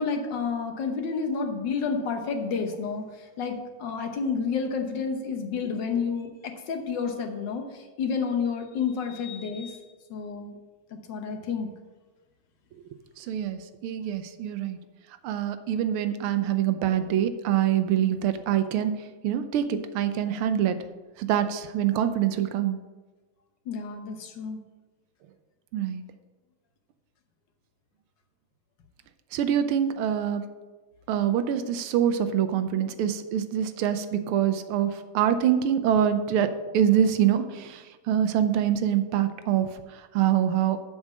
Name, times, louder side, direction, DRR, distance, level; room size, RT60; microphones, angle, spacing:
voice 1, 0.0-9.8 10.1-10.6 11.1-11.7 23.7-24.6, left 5 dB, 60° left, 5 dB, 1.6 m, -30 dB
voice 2, 13.2-14.8 15.2-18.9 19.2-20.8 21.2-22.8 25.7-26.0 29.3-30.4 31.1-36.5 36.7-40.8, right 10 dB, 90° right, 10 dB, 1.6 m, -25 dB
7.2 x 6.4 x 7.4 m, 1.3 s
omnidirectional pair, 2.3 m